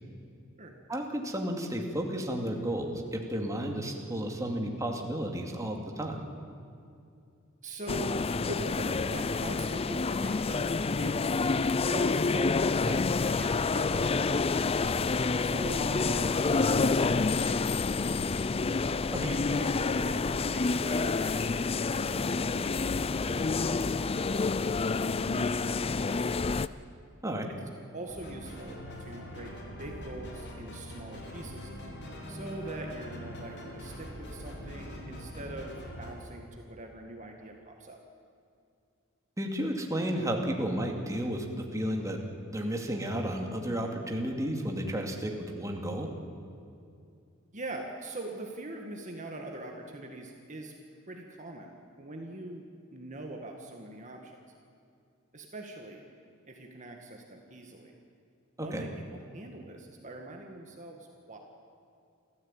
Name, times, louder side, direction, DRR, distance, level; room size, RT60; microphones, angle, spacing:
voice 1, 0.9-6.2 19.1-19.3 27.2-27.5 39.4-42.2 42.5-46.1 58.6-58.8, right 1 dB, 15° right, 1 dB, 2.4 m, -32 dB
voice 2, 7.6-11.2 11.8-14.8 15.4-18.5 19.2-26.7 27.9-31.7 32.3-38.0 47.5-50.7 51.1-54.4 55.3-56.0 56.5-57.9 58.6-61.4, right 1 dB, 35° right, 2 dB, 1.9 m, -43 dB
sound 1, 7.9-26.7, left 4 dB, 30° left, 0.4 m, -28 dB
sound 2, 28.1-36.1, equal, 55° left, 4.6 m, -43 dB
28.5 x 14.5 x 9.0 m, 2.5 s
head